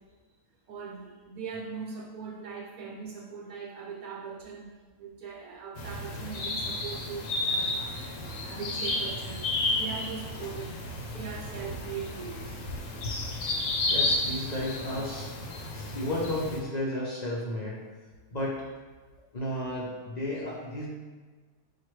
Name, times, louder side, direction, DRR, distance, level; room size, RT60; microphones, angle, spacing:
voice 1, 0.7-4.7 5.0-9.4 9.7-12.6 15.5-15.7 15.9-16.1, right 5 dB, 75° right, -1 dB, 1.0 m, -40 dB
sound 1, 5.8-16.6, left 2 dB, 70° left, 0.9 m, -32 dB
voice 2, 13.9-15.3 15.7-17.8 18.3-18.6 19.3-20.9, left 1 dB, 50° left, -5 dB, 0.5 m, -33 dB
5.7 x 2.4 x 3.1 m, 1.4 s
omnidirectional pair, 1.5 m